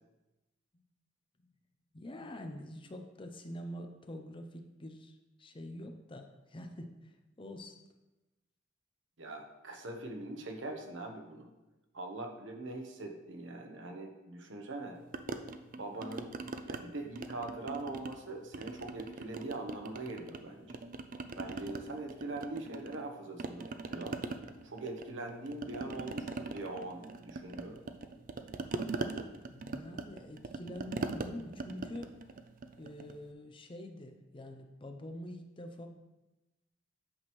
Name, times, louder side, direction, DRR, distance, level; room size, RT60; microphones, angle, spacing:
voice 1, 1.9-7.1 7.4-7.7 29.5-32.1 32.8-35.9, left 1 dB, 25° left, 6 dB, 0.6 m, -45 dB
voice 2, 9.2-11.5 11.9-15.0 15.7-16.3 16.7-20.8 21.3-24.2 24.6-27.8, right 2 dB, 70° right, 3 dB, 1.0 m, -42 dB
sound 1, 15.1-16.8 17.1-18.2 18.5-20.4 20.7-23.1 23.4-33.2, right 3 dB, 45° right, 0.4 m, -41 dB
8.6 x 6.1 x 3.1 m, 1.0 s
head